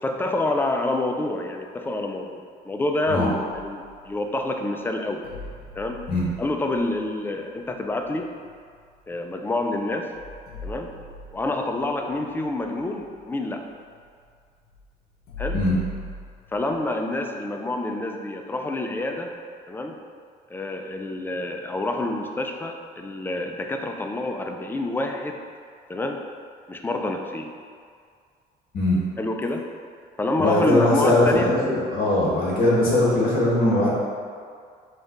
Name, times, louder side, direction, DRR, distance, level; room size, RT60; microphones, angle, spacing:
voice 1, 0.0-5.3 5.8-6.0 6.4-8.3 9.1-10.1 10.6-10.9 11.3-13.7 15.4-15.6 16.5-19.3 19.7-20.0 20.5-25.4 25.9-26.2 26.7-27.5 29.2-29.7 30.2-31.5, left 2 dB, 10° left, 4 dB, 0.4 m, -27 dB
sound 1, 3.5-4.4 5.2-9.2 9.7-9.8 10.1-17.0, left 1 dB, 80° left, 0.9 m, -41 dB
voice 2, 30.4-33.9, left 1 dB, 60° left, -5 dB, 1.5 m, -20 dB
5.3 x 2.4 x 3.9 m, 2.1 s
cardioid pair, 110°, 17 cm